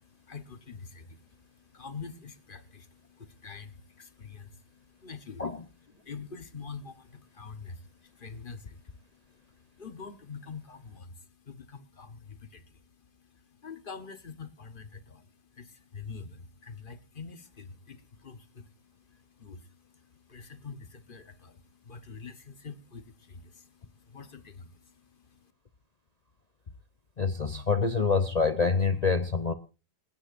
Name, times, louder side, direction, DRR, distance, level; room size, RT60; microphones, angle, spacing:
voice 1, 0.0-5.4 5.9-25.5, left 5 dB, 35° left, 1.0 m, -46 dB
voice 2, 27.2-29.5, left 4 dB, 60° left, 0.4 m, -26 dB
28.5 x 9.9 x 2.5 m
omnidirectional pair, 1.8 m